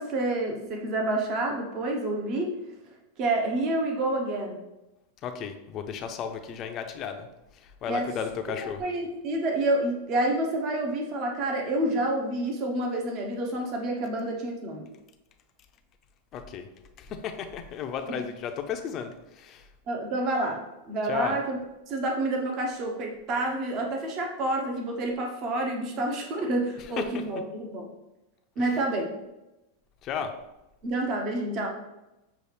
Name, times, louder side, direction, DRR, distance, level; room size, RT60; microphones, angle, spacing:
voice 1, 0.0-2.5 3.2-4.6 7.9-8.1 8.5-14.8 18.1-18.2 19.9-21.6 21.9-27.8 28.6-29.1 30.8-31.7, right 2 dB, 40° right, 1 dB, 0.8 m, -28 dB
voice 2, 5.2-7.3 7.8-8.8 16.3-16.7 17.0-19.6 21.1-21.4 27.1-27.2 30.0-30.3, left 7 dB, 35° left, 7 dB, 0.5 m, -34 dB
6.8 x 2.4 x 3.2 m, 0.95 s
supercardioid pair, 140°, 0 cm